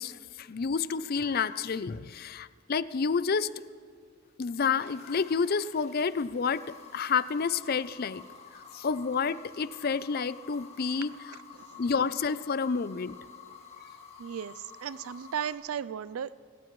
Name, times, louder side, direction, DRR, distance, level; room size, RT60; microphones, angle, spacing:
voice 1, 0.0-3.5 4.4-6.6 6.9-8.2 8.5-11.4 11.8-13.2, left 5 dB, 45° left, 16 dB, 0.4 m, -29 dB
sound 1, 4.8-15.5, left 5 dB, 30° left, 1.8 m, -50 dB
voice 2, 14.2-16.4, right 8 dB, 85° right, 17 dB, 0.4 m, -36 dB
28.0 x 15.0 x 3.1 m, 2.2 s
head